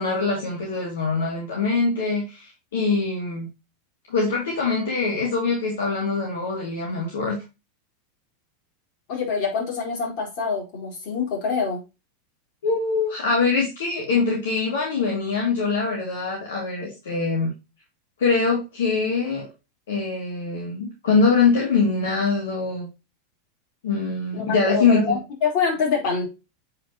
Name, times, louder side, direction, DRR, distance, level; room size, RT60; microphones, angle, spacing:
voice 1, 0.0-3.5 4.1-7.4 12.6-17.5 18.2-19.5 19.9-22.9 23.8-25.2, left 4 dB, 65° left, 2.5 m, -23 dB
voice 2, 9.1-11.8 24.3-26.3, left 5 dB, 50° left, 4.4 m, -25 dB
7.8 x 5.2 x 3.0 m
figure-of-eight pair, 85°, 0 cm